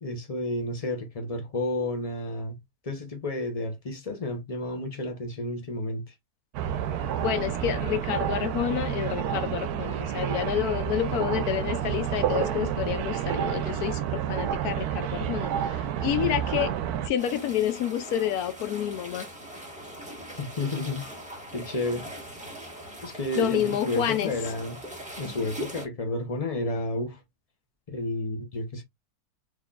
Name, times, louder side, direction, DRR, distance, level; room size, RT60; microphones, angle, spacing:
voice 1, 0.0-2.6 2.8-6.1 20.4-21.1 21.5-22.1 23.0-24.8 25.2-27.2 27.9-28.8, left 2 dB, 35° left, 0.7 m, -31 dB
sound 1, 6.5-17.1, right 10 dB, 80° right, 1.1 m, -29 dB
voice 2, 7.2-16.8 17.0-19.3 23.4-24.3, left 10 dB, 80° left, 1.1 m, -29 dB
sound 2, 17.2-25.9, right 1 dB, 5° right, 1.2 m, -41 dB
3.9 x 3.2 x 2.3 m
omnidirectional pair, 1.6 m